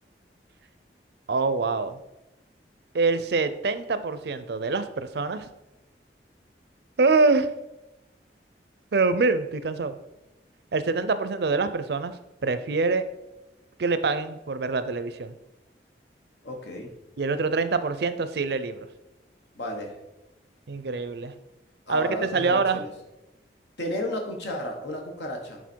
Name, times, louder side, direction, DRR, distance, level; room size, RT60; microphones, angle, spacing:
voice 1, 1.3-2.0 2.9-5.5 7.0-7.5 8.9-9.9 10.7-12.2 12.4-13.1 13.8-15.3 17.2-18.9 20.7-21.3 21.9-22.8, right 4 dB, 70° right, 12 dB, 0.5 m, -25 dB
voice 2, 16.4-16.9 19.5-20.0 21.9-22.9 23.8-25.6, left 1 dB, 80° left, 1 dB, 1.4 m, -32 dB
8.2 x 4.0 x 4.6 m, 0.95 s
head